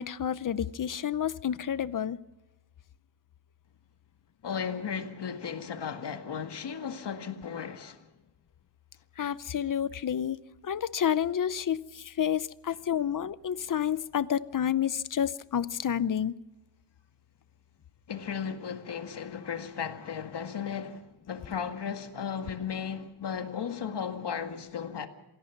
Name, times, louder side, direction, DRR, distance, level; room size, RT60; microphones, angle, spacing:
voice 1, 0.0-2.2 9.2-16.3, left 9 dB, 45° left, 0.7 m, -30 dB
voice 2, 4.4-8.1 18.1-25.1, left 7 dB, 60° left, 2.0 m, -35 dB
26.5 x 17.0 x 5.9 m
wide cardioid pair, 155°, 46 cm